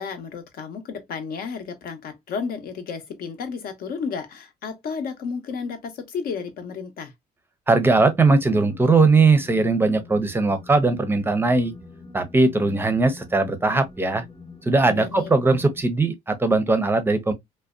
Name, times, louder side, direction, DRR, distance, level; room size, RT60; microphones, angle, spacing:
voice 1, 0.0-7.1 12.6-12.8 14.8-15.3, left 5 dB, 60° left, 0.7 m, -32 dB
voice 2, 7.7-11.7 12.1-14.2 14.7-17.3, right 3 dB, 15° right, 0.5 m, -19 dB
sound 1, 7.9-15.8, left 4 dB, 30° left, 0.7 m, -45 dB
2.6 x 2.1 x 2.3 m
cardioid pair, 110°, 17 cm